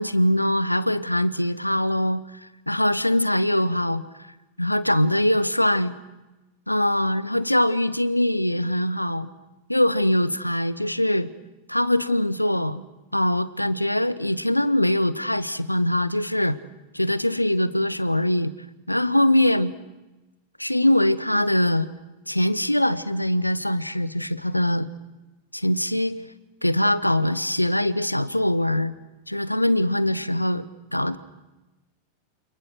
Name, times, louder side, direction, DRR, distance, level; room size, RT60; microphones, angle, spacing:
voice 1, 0.0-4.0 4.6-5.9 6.7-9.3 9.7-11.3 11.7-12.8 13.1-16.6 16.9-18.5 18.9-19.7 20.6-21.9 22.3-24.9 25.5-26.2 26.6-28.9 29.3-30.7 30.9-31.2, left 1 dB, 85° left, 17 dB, 1.1 m, -22 dB
28.5 x 28.0 x 6.4 m, 1.1 s
figure-of-eight pair, 90°, 0 cm